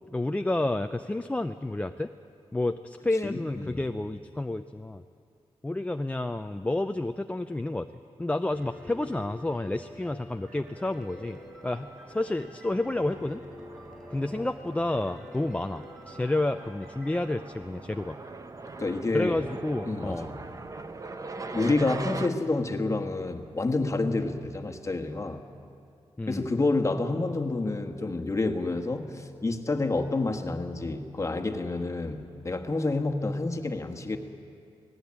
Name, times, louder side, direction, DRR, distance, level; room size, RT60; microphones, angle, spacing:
voice 1, 0.1-2.1 2.5-5.0 5.6-7.9 8.2-13.4 14.1-18.2 19.1-20.3 26.2-26.5, left 2 dB, 15° left, 7 dB, 0.5 m, -30 dB
voice 2, 3.2-3.8 18.8-19.5 19.8-20.4 21.5-25.4 26.3-34.2, left 2 dB, 30° left, 6 dB, 1.4 m, -29 dB
Piano, 8.5-17.2, left 1 dB, 5° right, 4.3 m, -48 dB
sound 1, 10.6-22.3, right 3 dB, 35° right, 0.9 m, -42 dB
18.5 x 16.0 x 8.7 m, 2.4 s
cardioid pair, 95°, 10 cm